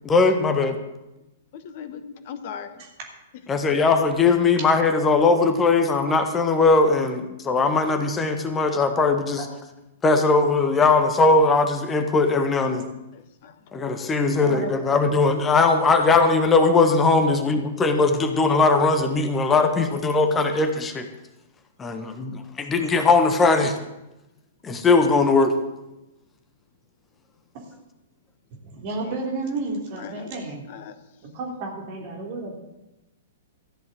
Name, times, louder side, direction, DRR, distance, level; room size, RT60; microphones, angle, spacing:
voice 1, 0.0-0.7 3.5-9.5 10.0-12.8 13.7-21.1 21.8-23.7 24.6-25.6, left 3 dB, 15° left, 7 dB, 1.4 m, -19 dB
voice 2, 1.5-2.7 13.1-13.5 29.0-29.1 29.9-31.0, left 7 dB, 45° left, 11 dB, 1.3 m, -39 dB
voice 3, 28.6-30.6 31.3-32.5, right 3 dB, 40° right, 1 dB, 3.2 m, -31 dB
14.0 x 7.8 x 7.6 m, 0.96 s
figure-of-eight pair, 105°, 0 cm